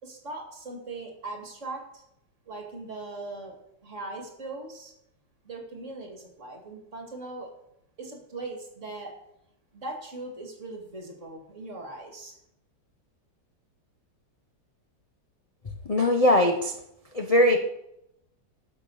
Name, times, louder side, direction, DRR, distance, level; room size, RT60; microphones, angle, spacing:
voice 1, 0.0-2.0 2.5-3.6 3.8-4.9 5.4-7.5 8.0-9.1 9.7-12.3, right 2 dB, 40° right, 2 dB, 2.6 m, -39 dB
voice 2, 15.8-16.7 17.1-17.6, left 1 dB, 30° left, 4 dB, 0.7 m, -20 dB
13.5 x 6.2 x 6.4 m, 0.81 s
omnidirectional pair, 2.0 m